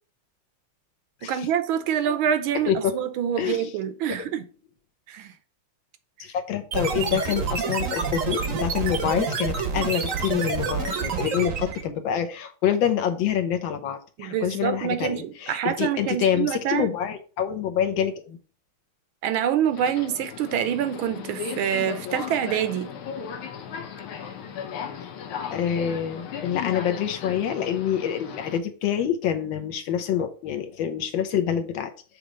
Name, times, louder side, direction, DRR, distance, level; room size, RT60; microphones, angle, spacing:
voice 1, 1.2-4.4 5.1-5.3 14.2-16.9 19.2-22.9, right 9 dB, 80° right, 1.5 m, -26 dB
voice 2, 2.7-3.0 3.4-3.7 6.2-18.4 25.0-25.1 25.5-31.9, left 9 dB, 70° left, 1.5 m, -26 dB
sound 1, 6.7-11.9, right 5 dB, 55° right, 1.0 m, -28 dB
Subway metro underground, 19.7-28.6, left 7 dB, 90° left, 1.7 m, -36 dB
6.6 x 3.1 x 5.0 m
omnidirectional pair, 2.3 m